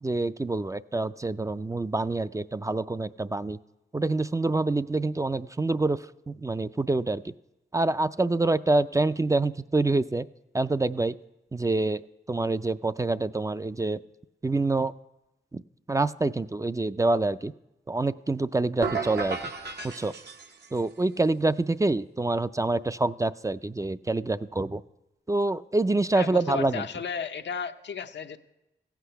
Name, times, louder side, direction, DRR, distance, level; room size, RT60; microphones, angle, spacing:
voice 1, 0.0-3.6 3.9-7.3 7.7-10.3 10.5-11.2 11.5-12.0 12.3-14.0 14.4-14.9 15.5-15.6 15.9-17.5 17.9-19.4 19.8-20.1 20.7-24.8 25.3-26.8, right 2 dB, 20° right, 13 dB, 0.3 m, -26 dB
sound 1, 18.8-20.9, right 4 dB, 65° right, 0.9 m, -34 dB
voice 2, 26.1-28.4, left 6 dB, 80° left, 7 dB, 0.6 m, -34 dB
15.0 x 8.2 x 5.7 m, 0.95 s
cardioid pair, 55°, 18 cm